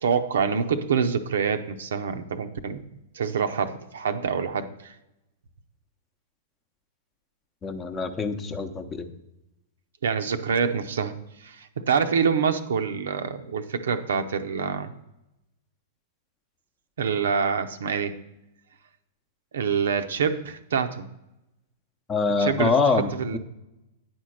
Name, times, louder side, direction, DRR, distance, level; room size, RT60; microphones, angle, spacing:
voice 1, 0.0-2.8 3.1-4.9 10.0-11.1 11.4-14.9 17.0-18.2 19.5-21.1 22.4-23.4, right 6 dB, 70° right, 9 dB, 0.6 m, -26 dB
voice 2, 7.6-9.1 22.1-23.4, left 4 dB, 20° left, 8 dB, 0.8 m, -25 dB
9.3 x 4.4 x 6.3 m, 0.88 s
hypercardioid pair, 105°, 0 cm